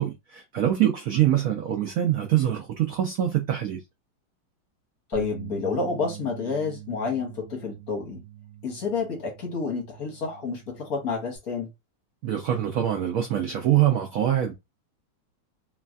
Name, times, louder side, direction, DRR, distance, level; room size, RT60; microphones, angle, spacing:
voice 1, 0.0-3.8 12.2-14.5, right 11 dB, 85° right, 0.7 m, -24 dB
voice 2, 5.1-8.2 8.6-11.7, left 4 dB, 60° left, 1.3 m, -29 dB
sound 1, 5.1-11.4, right 12 dB, 60° right, 1.0 m, -43 dB
3.2 x 2.3 x 2.5 m
omnidirectional pair, 2.0 m